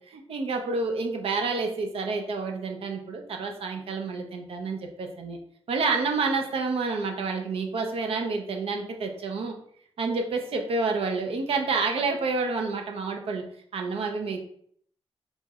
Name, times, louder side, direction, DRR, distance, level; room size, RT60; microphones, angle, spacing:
voice 1, 0.1-5.4 5.7-9.6 10.0-13.4 13.7-14.4, right 4 dB, 65° right, 2 dB, 0.5 m, -29 dB
3.0 x 2.8 x 2.3 m, 0.63 s
cardioid pair, 105°, 10 cm